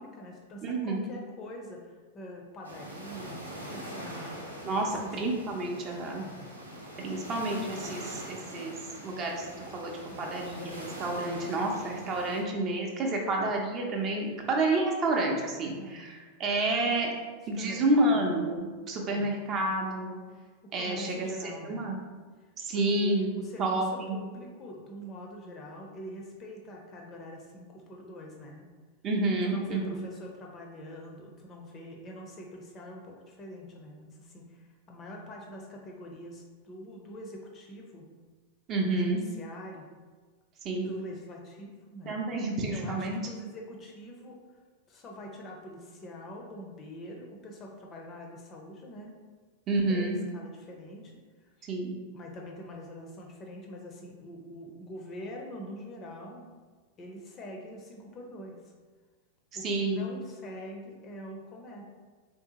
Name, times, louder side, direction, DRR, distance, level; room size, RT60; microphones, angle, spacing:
voice 1, 0.0-4.5 4.8-5.1 6.1-6.6 7.0-7.5 10.1-10.3 15.8-16.1 17.5-18.2 19.1-19.3 20.6-22.0 22.4-28.7 29.4-38.1 38.8-39.9 40.7-42.2 42.7-44.6 44.9-49.1 49.8-51.7 52.1-56.5 57.0-58.7 59.5-61.8, equal, 30° left, 0 dB, 0.5 m, -44 dB
voice 2, 0.6-1.1 4.6-6.2 7.0-8.7 9.0-9.4 9.7-9.9 10.2-16.1 16.4-17.1 17.5-20.2 20.7-22.0 22.6-23.3 23.6-24.2 29.0-30.1 38.7-39.2 40.6-40.9 42.1-43.2 49.7-50.2 51.7-51.9 59.6-60.0, right 2 dB, 30° right, 0 dB, 0.6 m, -29 dB
sound 1, 2.6-12.4, right 1 dB, 85° right, 0.6 m, -43 dB
3.5 x 2.6 x 2.8 m, 1.4 s
figure-of-eight pair, 90°, 0 cm